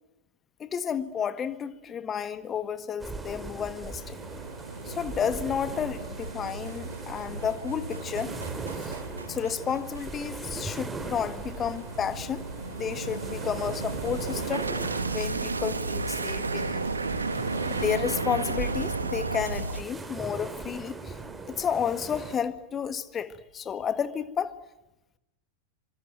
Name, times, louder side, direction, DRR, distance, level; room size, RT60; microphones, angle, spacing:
voice 1, 0.6-4.2 4.8-8.3 8.7-9.0 9.2-14.7 15.1-16.8 17.7-21.2 21.5-24.6, left 8 dB, 25° left, 1.6 m, -31 dB
sound 1, 3.0-22.4, right 3 dB, 10° right, 2.9 m, -40 dB
sound 2, 3.8-19.8, right 3 dB, 75° right, 1.9 m, -34 dB
26.0 x 25.0 x 9.2 m
figure-of-eight pair, 90°, 0 cm